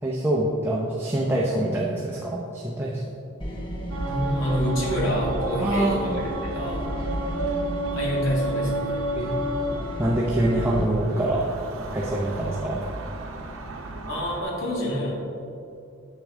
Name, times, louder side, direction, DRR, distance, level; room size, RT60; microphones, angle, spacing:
voice 1, 0.0-3.1 5.6-6.2 9.2-9.5 10.0-11.5 11.9-12.8, right 1 dB, 10° right, -5 dB, 0.6 m, -25 dB
sound 1, 3.4-10.8, equal, 25° left, 0.8 m, -34 dB
sound 2, 3.9-14.4, right 1 dB, 80° right, 0.8 m, -32 dB
voice 2, 4.1-6.9 7.9-9.0 14.1-15.1, equal, 70° left, -4 dB, 2.0 m, -27 dB
8.4 x 6.5 x 3.7 m, 2.6 s
head